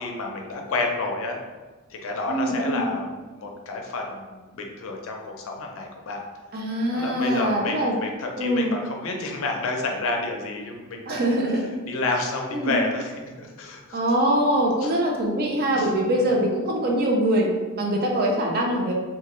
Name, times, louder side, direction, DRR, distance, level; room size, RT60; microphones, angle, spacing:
voice 1, 0.0-1.4 1.9-6.2 6.9-7.7 8.0-11.1 11.9-14.0 14.8-14.9 15.7-15.9, left 3 dB, 65° left, 2 dB, 0.5 m, -30 dB
voice 2, 2.3-2.9 6.5-8.0 8.4-8.7 11.1-11.6 12.5-12.8 13.9-18.9, right 1 dB, 45° right, 0 dB, 0.5 m, -23 dB
3.0 x 2.2 x 3.0 m, 1.3 s
head